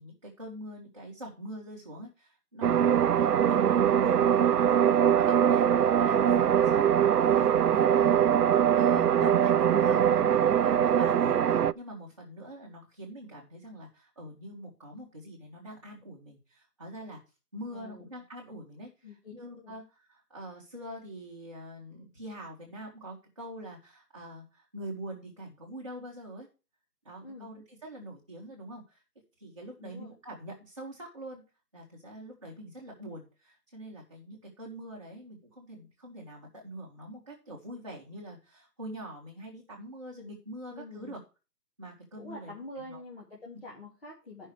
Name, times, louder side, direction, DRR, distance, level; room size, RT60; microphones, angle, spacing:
voice 1, 0.0-10.0 10.4-17.2 17.5-26.5 27.0-29.0 29.4-31.4 31.7-41.2 41.8-43.0, right 1 dB, 20° right, -5 dB, 1.3 m, -44 dB
sound 1, 2.6-11.7, right 9 dB, 70° right, 0.6 m, -22 dB
voice 2, 9.6-10.7 11.0-11.2 17.7-18.1 19.0-19.3 19.6-19.7 27.2-27.5 29.8-30.1 40.7-41.2 42.2-44.5, left 2 dB, 35° left, -4 dB, 2.4 m, -46 dB
12.5 x 5.6 x 4.8 m, 0.31 s
hypercardioid pair, 180°, 48 cm